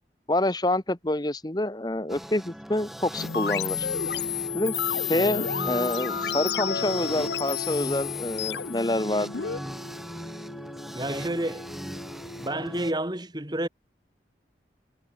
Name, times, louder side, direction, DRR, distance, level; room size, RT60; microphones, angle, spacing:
voice 1, 0.3-3.9 4.5-4.7 5.1-9.3, left 1 dB, 25° left, 1.2 m, -27 dB
sound 1, 2.1-12.9, equal, ahead, 1.4 m, -40 dB
sound 2, 3.2-9.6, left 8 dB, 75° left, 0.8 m, -31 dB
sound 3, 3.9-12.9, left 1 dB, 45° left, 1.8 m, -40 dB
voice 2, 5.1-5.6 10.9-11.7 12.4-13.7, right 1 dB, 25° right, 2.6 m, -30 dB
head